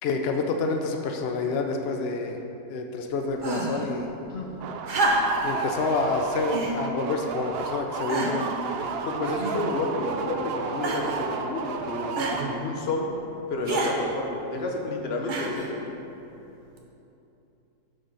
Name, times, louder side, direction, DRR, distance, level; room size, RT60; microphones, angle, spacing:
voice 1, 0.0-2.4 2.7-4.1 5.4-8.5, left 4 dB, 75° left, 4 dB, 0.5 m, -28 dB
sound 1, 3.4-3.9 4.8-5.5 6.5-6.8 7.5-7.6 8.1-8.5 9.4-9.9 10.8-11.2 12.2-12.4 13.6-14.0 15.3-15.7 16.8-16.9, right 2 dB, 40° right, 0.8 m, -28 dB
sound 2, 4.6-12.9, right 5 dB, 85° right, 0.5 m, -32 dB
voice 2, 9.1-13.2 13.5-15.9, left 2 dB, 50° left, 1 dB, 1.0 m, -30 dB
6.8 x 6.4 x 5.5 m, 3.0 s
omnidirectional pair, 1.6 m